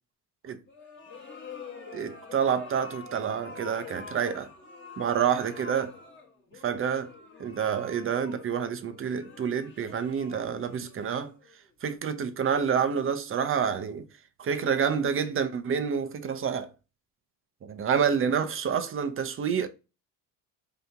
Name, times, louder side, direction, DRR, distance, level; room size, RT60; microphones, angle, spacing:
sound 1, 0.7-11.7, left 4 dB, 25° left, 1.1 m, -46 dB
voice 1, 1.9-4.5 5.0-5.9 6.6-7.1 7.4-11.3 11.8-14.1 14.4-16.7 17.6-19.7, right 7 dB, 30° right, 0.6 m, -28 dB
2.9 x 2.6 x 3.4 m
supercardioid pair, 75°, 43 cm